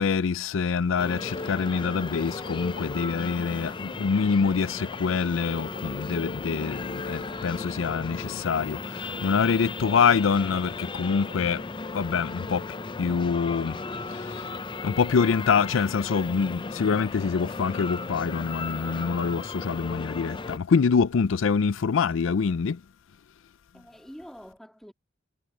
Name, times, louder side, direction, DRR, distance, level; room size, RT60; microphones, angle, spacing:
voice 1, 0.0-11.6 11.9-13.8 14.1-14.5 14.8-22.8, left 5 dB, 85° left, 0.5 m, -25 dB
sound 1, 1.0-20.6, left 3 dB, 25° left, 0.6 m, -36 dB
voice 2, 23.7-24.9, equal, ahead, 2.8 m, -47 dB
head